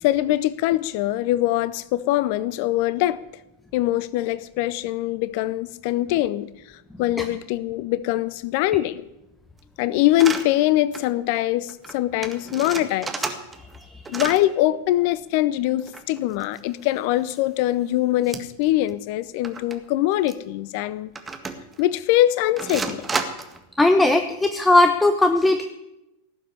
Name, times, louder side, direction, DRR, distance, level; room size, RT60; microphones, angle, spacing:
voice 1, 0.0-3.2 3.7-9.0 9.8-13.3 14.1-21.1 21.8-23.1, left 15 dB, 45° left, 18 dB, 0.6 m, -23 dB
sound 1, 10.1-10.5 10.9-11.1 11.4-11.5 11.7-11.9 12.2-13.8 14.0-14.5 15.8-16.8 17.3-17.4 18.2-18.6 18.9-19.0 19.4-19.7 20.3-20.4 21.2-21.8 22.6-23.6, right 4 dB, 15° right, 1.8 m, -31 dB
voice 2, 23.8-25.6, left 2 dB, 10° left, 8 dB, 1.0 m, -18 dB
18.0 x 7.6 x 9.7 m, 0.92 s
figure-of-eight pair, 90°, 0 cm